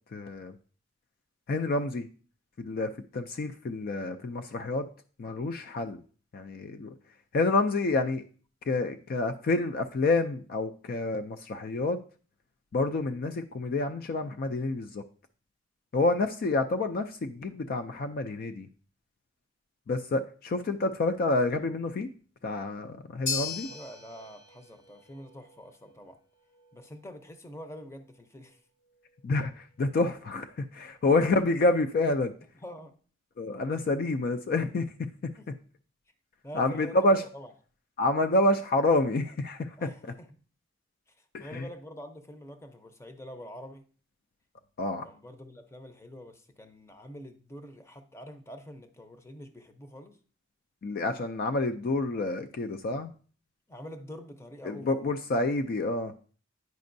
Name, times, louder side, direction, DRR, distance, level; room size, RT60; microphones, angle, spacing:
voice 1, 0.1-0.5 1.5-2.1 2.6-4.9 5.2-6.0 6.3-6.9 7.3-8.2 8.7-12.0 12.7-15.0 15.9-18.7 19.9-22.1 22.4-23.7 29.2-32.3 33.4-35.1 36.5-37.2 38.0-40.1 41.3-41.7 44.8-45.1 50.8-53.1 54.7-56.1, left 2 dB, 50° left, 8 dB, 0.3 m, -28 dB
sound 1, 23.3-31.6, left 4 dB, 70° left, 1.6 m, -42 dB
voice 2, 23.4-26.2 26.7-28.6 32.6-33.0 35.4-35.5 36.4-37.0 37.3-37.5 39.8-40.3 41.1-43.8 45.0-50.2 53.7-55.0, equal, 15° left, 7 dB, 0.6 m, -46 dB
9.3 x 5.2 x 2.6 m, 0.41 s
head